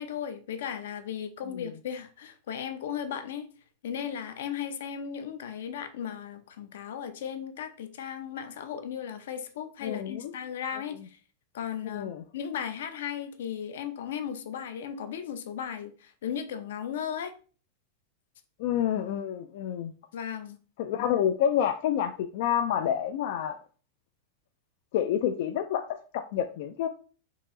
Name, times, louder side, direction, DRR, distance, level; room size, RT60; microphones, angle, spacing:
voice 1, 0.0-3.5 3.8-11.2 11.5-17.3 20.1-20.6, left 8 dB, 85° left, 0.7 m, -36 dB
voice 2, 9.8-10.3 11.0-11.1 11.8-12.2 18.6-19.9 20.8-23.6 24.9-26.9, left 9 dB, 55° left, 0.3 m, -28 dB
4.6 x 2.9 x 3.7 m
supercardioid pair, 170°, 0 cm